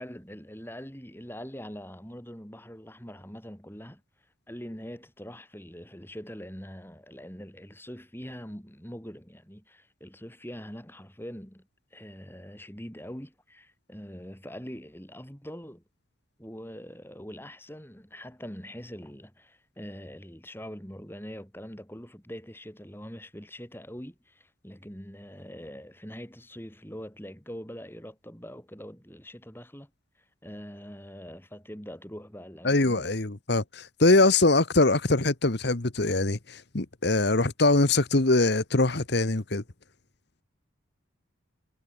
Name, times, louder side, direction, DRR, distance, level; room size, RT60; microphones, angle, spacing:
voice 1, 0.0-4.0 4.5-15.8 16.4-29.9 30.4-33.1, equal, 10° left, 5.4 m, -43 dB
voice 2, 32.6-39.6, left 2 dB, 55° left, 1.3 m, -23 dB
head